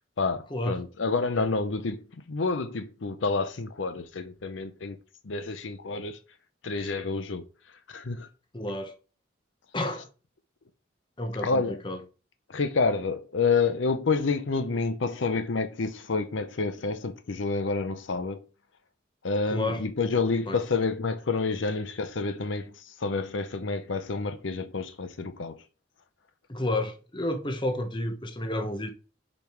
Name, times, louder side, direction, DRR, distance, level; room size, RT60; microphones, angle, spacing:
voice 1, 0.2-5.0 5.2-6.2 6.6-7.4 7.9-8.3 11.4-11.8 12.5-18.4 19.2-25.6, left 4 dB, 80° left, 0.7 m, -29 dB
voice 2, 8.5-8.9 9.7-10.1 11.2-12.0 19.5-19.8 20.5-20.8 26.5-28.9, left 1 dB, 25° left, 1.1 m, -31 dB
5.2 x 5.1 x 4.6 m
head